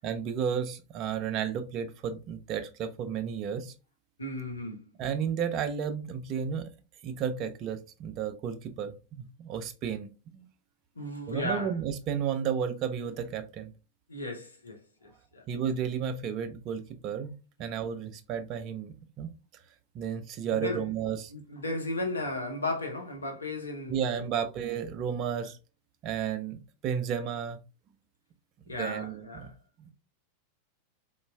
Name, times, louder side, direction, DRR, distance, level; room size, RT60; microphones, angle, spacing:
voice 1, 0.0-3.7 5.0-6.7 7.0-10.5 11.3-13.7 15.5-17.3 17.6-19.3 19.9-21.3 23.9-25.6 26.0-27.6 28.7-29.5 29.8-29.9, right 7 dB, 35° right, 0.4 m, -33 dB
voice 2, 4.2-4.8 11.0-11.7 14.1-15.4 20.5-20.8 21.3-24.3 28.7-29.5, left 1 dB, 75° left, 0.7 m, -35 dB
4.0 x 2.2 x 2.2 m
figure-of-eight pair, 90°, 0 cm